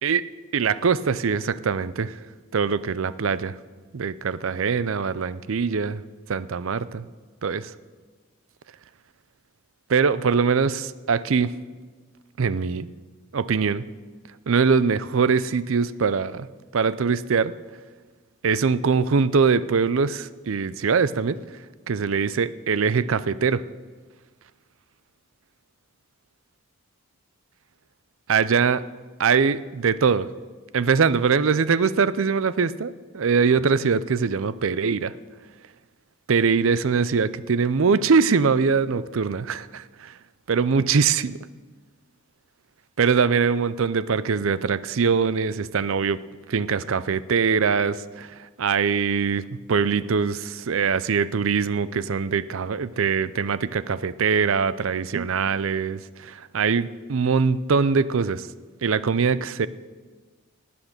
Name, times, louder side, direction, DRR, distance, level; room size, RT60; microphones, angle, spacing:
voice 1, 0.5-2.1 2.5-3.5 3.9-6.0 6.3-7.1 7.4-7.7 9.9-11.5 12.4-12.9 13.3-13.8 14.5-16.5 16.7-17.5 18.4-21.4 21.9-23.6 28.3-28.8 29.2-30.3 30.7-35.1 36.3-40.1 40.5-41.4 43.0-46.2 46.5-48.3 48.6-49.4 49.7-58.5 58.8-59.7, right 5 dB, 65° right, 16 dB, 0.5 m, -22 dB
19.0 x 8.5 x 6.7 m, 1.4 s
head